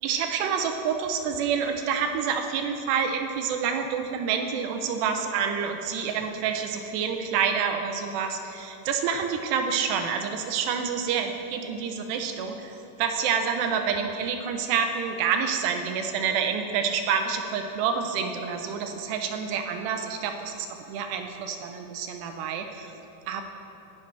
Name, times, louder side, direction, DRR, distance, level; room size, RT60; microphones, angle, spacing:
voice 1, 0.0-22.9 23.3-23.4, right 6 dB, 75° right, 5 dB, 2.7 m, -28 dB
20.5 x 11.0 x 3.4 m, 3.0 s
omnidirectional pair, 5.2 m